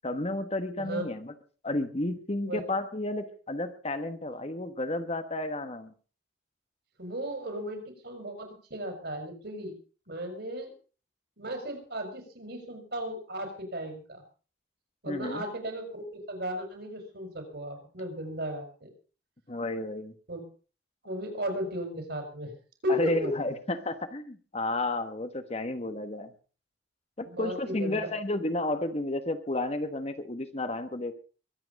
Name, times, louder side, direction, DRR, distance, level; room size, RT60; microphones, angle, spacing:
voice 1, 0.0-1.3 1.6-5.9 15.0-15.4 19.5-20.1 22.9-26.3 27.2-31.1, left 2 dB, 35° left, 9 dB, 1.3 m, -32 dB
voice 2, 7.0-9.7 10.1-10.7 11.4-14.2 15.0-18.9 20.3-20.4 21.0-22.5 22.8-23.3 27.2-28.1, equal, 60° right, 5 dB, 5.2 m, -35 dB
23.0 x 8.8 x 5.3 m, 0.38 s
head